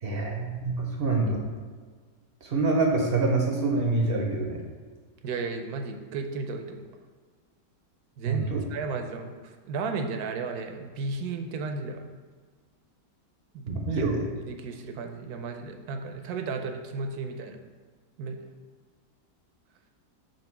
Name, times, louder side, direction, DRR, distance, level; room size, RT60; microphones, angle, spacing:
voice 1, 0.0-1.4 2.4-4.6 8.3-8.6 13.7-14.2, right 3 dB, 55° right, 1 dB, 0.6 m, -26 dB
voice 2, 5.2-6.8 8.2-12.1 13.5-14.2 14.5-17.6 18.2-18.4, right 4 dB, 70° right, 5 dB, 1.1 m, -34 dB
7.4 x 2.7 x 5.8 m, 1.5 s
omnidirectional pair, 1.8 m